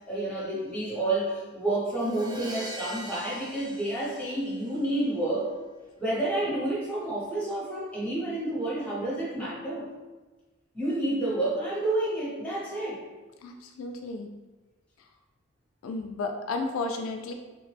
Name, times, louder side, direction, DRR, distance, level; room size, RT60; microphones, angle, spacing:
voice 1, 0.0-5.5 6.0-9.9 10.7-13.0, right 1 dB, 5° left, -6 dB, 0.8 m, -29 dB
Crash cymbal, 1.9-4.9, right 2 dB, 20° right, 0.4 m, -41 dB
voice 2, 13.4-14.3 15.8-17.3, left 3 dB, 85° left, 4 dB, 0.3 m, -33 dB
3.0 x 2.1 x 3.2 m, 1.2 s
head